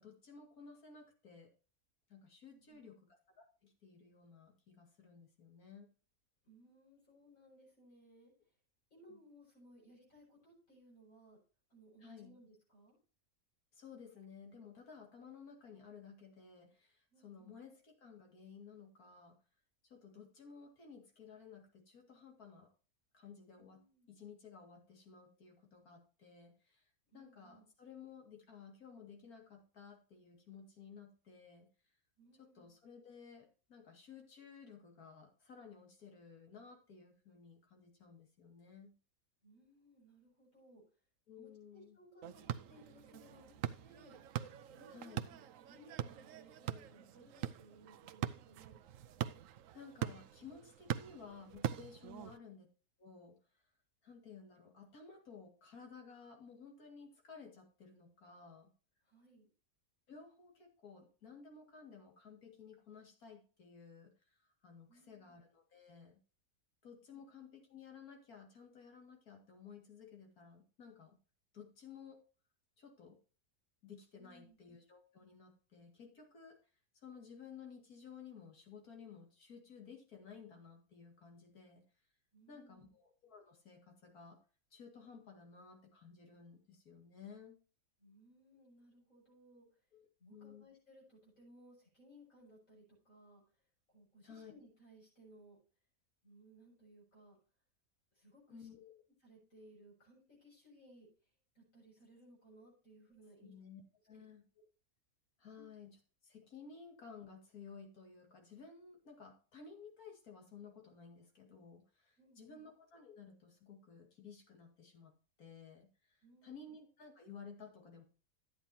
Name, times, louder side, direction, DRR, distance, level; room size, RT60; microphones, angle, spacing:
voice 1, 0.0-1.5 2.1-5.9 9.1-9.2 12.0-12.4 13.7-19.4 19.8-22.7 23.1-31.7 32.4-39.0 41.3-42.0 44.9-45.3 49.7-52.7 53.0-53.4 54.0-58.7 60.1-66.2 66.8-71.2 71.5-72.2 72.8-73.2 73.8-76.6 76.9-81.8 82.5-84.4 84.7-87.6 89.9-90.7 94.2-94.5 98.5-99.0 103.4-103.8 104.1-104.4 105.4-106.0 106.2-115.1 115.4-118.0, left 6 dB, 85° left, 2 dB, 2.7 m, -55 dB
voice 2, 2.5-2.9 6.4-8.3 8.9-11.4 11.7-13.0 17.1-17.6 23.6-24.1 27.1-27.7 32.2-32.7 39.4-40.8 41.4-44.2 44.7-45.4 45.7-48.8 59.0-59.5 64.9-65.3 67.1-67.2 74.2-74.6 82.3-82.9 88.0-89.7 90.2-93.4 93.9-95.6 96.2-97.4 98.1-98.7 99.2-101.1 101.6-103.5 104.1-104.2 105.6-105.7 112.2-112.6 116.2-116.7, right 1 dB, 65° left, -5 dB, 6.9 m, -62 dB
sound 1, 42.2-52.4, right 11 dB, 70° right, 1.0 m, -43 dB
12.0 x 9.2 x 2.8 m, 0.36 s
omnidirectional pair, 1.5 m